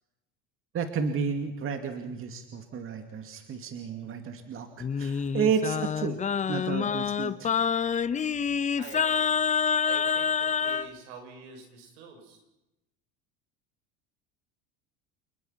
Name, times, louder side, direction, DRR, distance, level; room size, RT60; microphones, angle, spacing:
voice 1, 0.7-6.2 6.5-7.5, right 6 dB, 40° right, 6 dB, 2.5 m, -31 dB
Singing, 4.8-10.9, left 6 dB, 20° left, 0.8 m, -27 dB
voice 2, 8.8-9.3 9.8-12.4, right 5 dB, 85° right, 4 dB, 7.5 m, -46 dB
29.5 x 20.0 x 5.9 m, 0.90 s
supercardioid pair, 120°, 33 cm